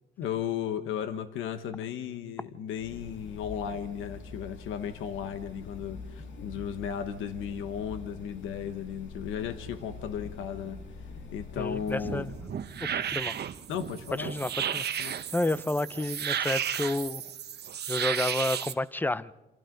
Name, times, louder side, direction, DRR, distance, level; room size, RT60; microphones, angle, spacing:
voice 1, 0.2-10.8 11.3-12.3 13.7-14.3 15.0-15.2, left 8 dB, 90° left, 1.3 m, -35 dB
sound 1, 2.7-12.6, left 4 dB, 70° left, 2.5 m, -45 dB
voice 2, 11.6-12.3 12.8-13.4 14.1-17.2 17.9-19.3, left 2 dB, 10° left, 0.6 m, -31 dB
sound 2, 11.9-18.7, right 9 dB, 55° right, 1.1 m, -33 dB
27.5 x 26.5 x 4.0 m
cardioid pair, 90°, 20 cm